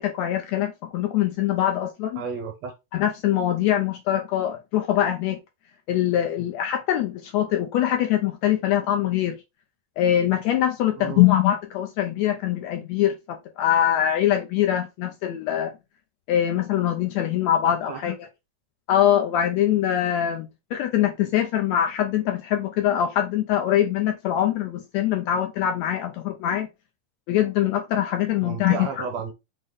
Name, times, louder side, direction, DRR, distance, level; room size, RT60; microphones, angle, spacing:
voice 1, 0.0-2.2 2.9-5.4 5.9-9.4 10.0-15.7 16.3-18.2 18.9-26.7 27.3-29.0, left 11 dB, 80° left, 1.6 m, -23 dB
voice 2, 2.2-2.7 11.0-11.2 17.9-18.0 28.4-29.3, right 6 dB, 70° right, 1.7 m, -32 dB
5.4 x 2.1 x 3.5 m
omnidirectional pair, 3.5 m